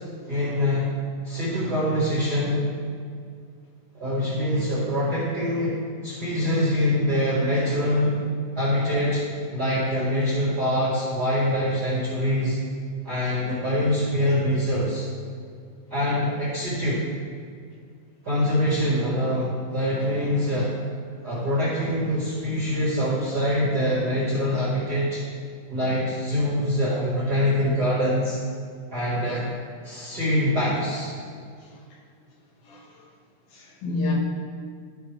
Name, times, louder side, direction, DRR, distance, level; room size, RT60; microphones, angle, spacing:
voice 1, 0.3-0.9 1.2-2.7 3.9-5.7 6.0-8.2 8.5-9.2 9.5-12.6 13.0-15.1 15.9-17.0 18.2-20.7 21.2-25.2 25.7-28.4 28.9-29.5 29.8-31.1, equal, 45° right, -8 dB, 1.4 m, -24 dB
voice 2, 32.6-33.1 33.5-34.1, left 2 dB, 75° left, -4 dB, 3.1 m, -31 dB
13.5 x 5.0 x 3.3 m, 2.2 s
omnidirectional pair, 4.2 m